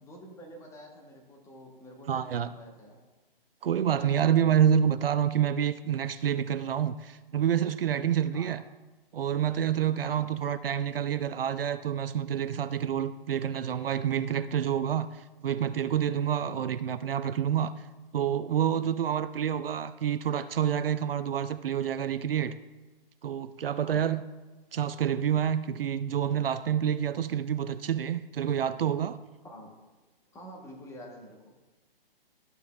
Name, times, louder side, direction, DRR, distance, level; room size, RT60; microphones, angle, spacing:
voice 1, 0.0-3.0 8.3-8.6 10.0-10.3 16.4-16.7 23.8-24.0 29.4-29.7 30.3-31.6, equal, 10° left, 1.0 m, -48 dB
voice 2, 2.1-2.5 3.6-8.6 9.1-15.1 15.4-17.7 18.1-22.5 23.2-24.2 24.7-29.2, right 9 dB, 70° right, 0.5 m, -28 dB
13.0 x 6.6 x 2.3 m
figure-of-eight pair, 135°, 30 cm